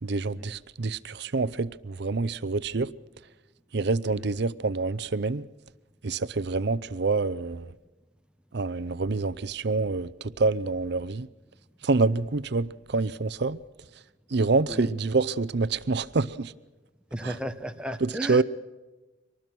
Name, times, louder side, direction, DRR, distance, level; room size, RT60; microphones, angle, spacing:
voice 1, 0.0-2.9 3.7-5.5 6.0-7.7 8.5-11.3 11.8-13.6 14.3-16.5 17.2-17.3 18.0-18.4, right 3 dB, 65° right, 0.7 m, -27 dB
voice 2, 17.1-18.4, right 1 dB, 5° right, 1.1 m, -34 dB
24.5 x 19.5 x 6.1 m
head